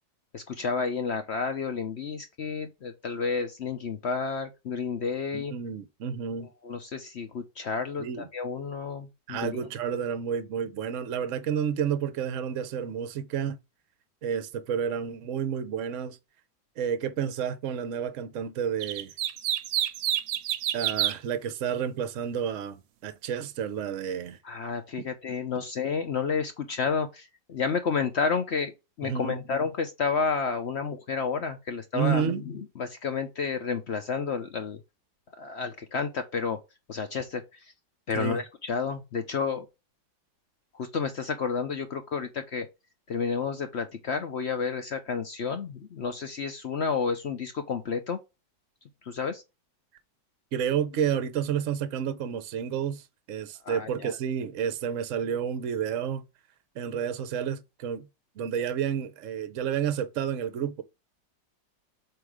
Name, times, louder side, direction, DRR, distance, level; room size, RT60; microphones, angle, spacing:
voice 1, 0.3-5.5 6.6-9.7 24.4-28.7 29.0-34.8 35.4-36.6 36.9-37.6 38.1-39.7 40.7-42.7 43.1-48.2 49.1-49.4 53.6-54.1, left 5 dB, 65° left, 0.6 m, -31 dB
voice 2, 5.3-6.5 8.0-8.3 9.3-13.6 14.2-16.2 16.8-19.1 20.7-24.4 29.0-29.4 31.9-32.4 38.1-38.4 50.5-56.2 56.7-58.1 58.4-60.8, right 8 dB, 55° right, 0.9 m, -30 dB
sound 1, 18.8-21.2, right 12 dB, 85° right, 1.3 m, -28 dB
7.8 x 2.8 x 4.9 m
omnidirectional pair, 2.0 m